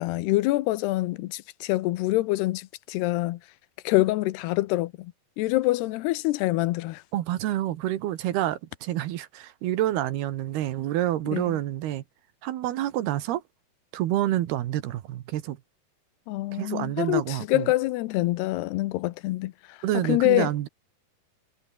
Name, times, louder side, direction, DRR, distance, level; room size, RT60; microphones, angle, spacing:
voice 1, 0.0-3.4 3.8-7.0 11.3-11.6 16.3-19.8 20.0-20.5, left 18 dB, 90° left, 2.9 m, -26 dB
voice 2, 7.1-12.0 12.4-13.4 13.9-15.6 16.5-17.7 19.8-20.7, right 13 dB, 80° right, 3.2 m, -28 dB
omnidirectional pair, 4.6 m